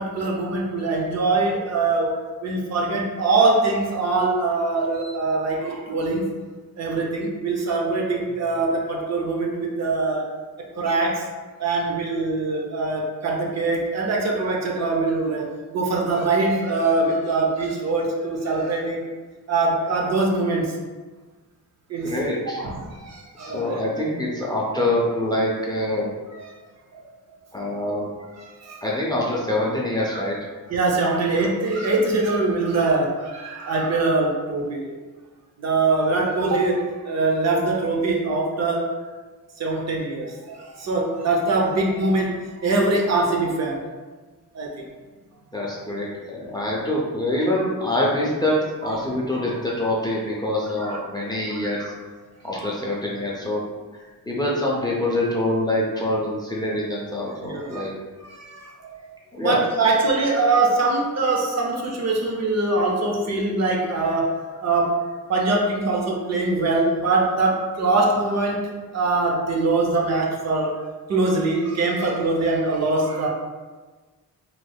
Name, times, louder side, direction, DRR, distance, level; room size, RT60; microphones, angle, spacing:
voice 1, 0.0-2.1 2.4-6.2 6.8-10.2 10.8-11.2 11.6-19.1 19.5-20.7 21.9-22.1 22.6-23.8 26.3-26.4 26.9-27.0 28.4-28.8 30.1-30.2 30.7-34.9 35.6-38.8 39.6-42.3 42.6-43.8 44.5-44.9 47.5-47.7 48.8-49.0 50.8-51.0 51.5-51.9 52.5-52.7 57.4-57.8 58.2-58.7 59.4-64.3 64.6-65.0 65.3-68.6 68.9-70.7 71.1-73.3, right 3 dB, 50° right, 0 dB, 0.6 m, -23 dB
voice 2, 22.0-22.6 23.4-26.1 27.5-28.1 28.8-30.3 45.5-51.9 52.4-53.6 54.3-57.9 59.3-59.6, left 1 dB, 15° left, -4 dB, 0.4 m, -25 dB
3.3 x 3.1 x 2.2 m, 1.3 s
wide cardioid pair, 140°, 34 cm